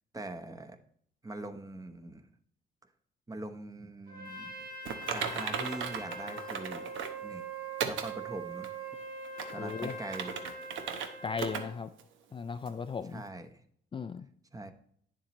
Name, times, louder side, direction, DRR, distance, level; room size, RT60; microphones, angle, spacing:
voice 1, 0.1-0.8 1.2-2.3 3.3-4.7 5.1-6.9 7.2-7.4 7.9-8.7 9.5-10.4 13.1-13.6 14.5-14.7, right 2 dB, 15° right, 7 dB, 0.9 m, -42 dB
Trumpet, 4.1-11.7, right 3 dB, 50° right, 3.5 m, -42 dB
Typing, 4.9-7.2 7.8-8.1 8.6-8.7 9.2-11.1 11.4-11.6 12.0-12.1 12.7-12.8, right 7 dB, 80° right, 0.9 m, -36 dB
voice 2, 9.6-9.9 11.2-11.9 12.3-13.2 13.9-14.3, left 5 dB, 25° left, 9 dB, 0.4 m, -36 dB
9.8 x 7.2 x 3.0 m, 0.64 s
cardioid pair, 90°, 20 cm